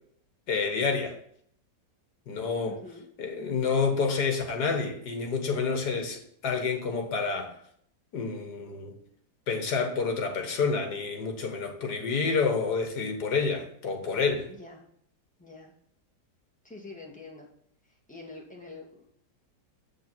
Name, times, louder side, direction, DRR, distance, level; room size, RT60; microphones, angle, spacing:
voice 1, 0.5-1.2 2.3-2.8 3.2-7.5 8.1-9.0 9.5-14.5, left 5 dB, 70° left, 2.0 m, -28 dB
voice 2, 2.6-3.1 14.5-14.9 15.4-15.7 16.6-17.5 17.9-19.1, left 3 dB, 5° left, 2.3 m, -46 dB
7.8 x 7.4 x 4.4 m
omnidirectional pair, 1.8 m